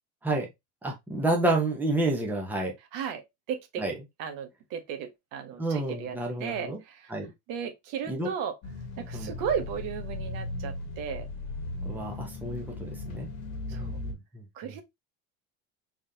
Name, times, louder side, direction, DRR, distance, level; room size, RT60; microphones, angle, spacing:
voice 1, 0.8-2.7 3.8-3.9 5.6-6.8 7.1-7.3 8.1-8.3 9.1-9.3 11.8-13.3 13.7-14.7, right 2 dB, 5° right, 0.8 m, -30 dB
voice 2, 2.9-3.8 4.2-7.1 7.5-8.6 9.0-11.3 13.7-14.0 14.5-14.8, right 8 dB, 65° right, 1.1 m, -35 dB
sound 1, 8.6-14.1, left 2 dB, 50° left, 1.3 m, -37 dB
3.7 x 3.2 x 2.7 m
cardioid pair, 150°, 36 cm